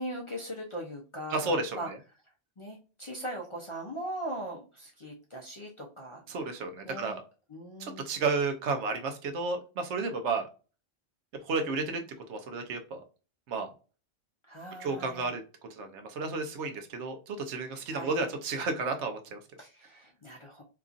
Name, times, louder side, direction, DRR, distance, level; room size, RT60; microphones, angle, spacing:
voice 1, 0.0-1.9 2.6-6.2 6.8-7.2 7.5-8.2 14.5-15.3 17.9-18.2 19.6-20.6, right 1 dB, 45° left, 0 dB, 0.4 m, -40 dB
voice 2, 1.3-2.0 6.3-7.2 7.8-10.5 11.4-12.0 12.3-13.0 13.5-13.7 14.8-15.4 15.7-19.4, right 3 dB, 90° right, 5 dB, 0.9 m, -32 dB
2.9 x 2.5 x 2.4 m, 0.35 s
omnidirectional pair, 1.2 m